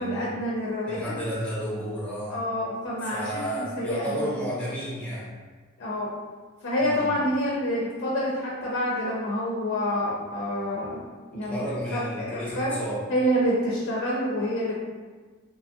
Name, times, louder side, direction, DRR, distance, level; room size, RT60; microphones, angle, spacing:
voice 1, 0.0-1.2 2.3-4.4 5.8-6.1 6.6-11.1 11.3-12.7 13.1-14.8, equal, 60° left, -5 dB, 0.5 m, -28 dB
voice 2, 0.9-2.4 3.0-5.3 6.8-7.1 11.3-13.0, equal, 5° left, -8 dB, 0.8 m, -32 dB
3.0 x 2.3 x 2.6 m, 1.4 s
head